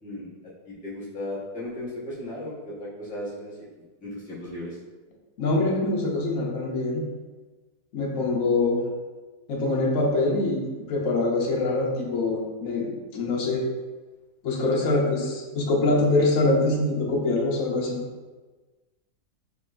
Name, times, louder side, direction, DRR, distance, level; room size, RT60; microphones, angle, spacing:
voice 1, 0.0-3.7 4.0-4.8, left 1 dB, 5° left, -10 dB, 1.1 m, -36 dB
voice 2, 5.4-7.0 7.9-8.8 9.5-13.6 14.4-18.0, left 2 dB, 60° left, -2 dB, 1.1 m, -24 dB
6.1 x 2.9 x 2.5 m, 1.3 s
omnidirectional pair, 1.7 m